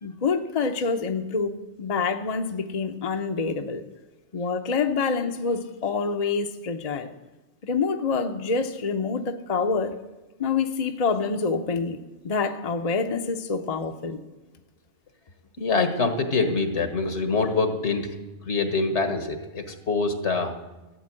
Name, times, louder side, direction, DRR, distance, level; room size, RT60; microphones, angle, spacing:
voice 1, 0.0-3.8 4.3-7.1 7.6-9.9 10.4-12.0 12.2-14.2, left 4 dB, 35° left, 5 dB, 0.8 m, -26 dB
voice 2, 15.6-18.1 18.4-20.5, left 3 dB, 70° left, 6 dB, 1.8 m, -25 dB
15.0 x 8.9 x 7.6 m, 1.1 s
omnidirectional pair, 1.2 m